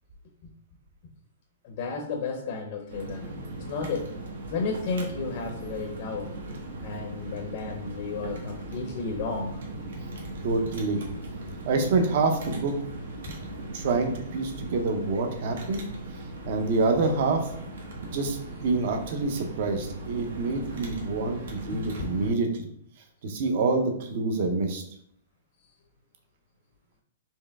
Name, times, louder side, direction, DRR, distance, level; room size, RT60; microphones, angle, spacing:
voice 1, 1.6-3.3 3.7-4.1 4.5-6.3 6.8-9.5 22.0-22.1, left 4 dB, 40° left, 2 dB, 0.7 m, -32 dB
sound 1, 2.9-22.3, right 2 dB, 75° right, 1.2 m, -39 dB
voice 2, 10.4-11.0 11.7-12.8 13.7-15.8 16.4-17.5 18.0-22.5 23.2-24.8, right 3 dB, 45° right, 4 dB, 0.7 m, -26 dB
4.6 x 3.1 x 3.5 m, 0.68 s
hypercardioid pair, 170°, 0 cm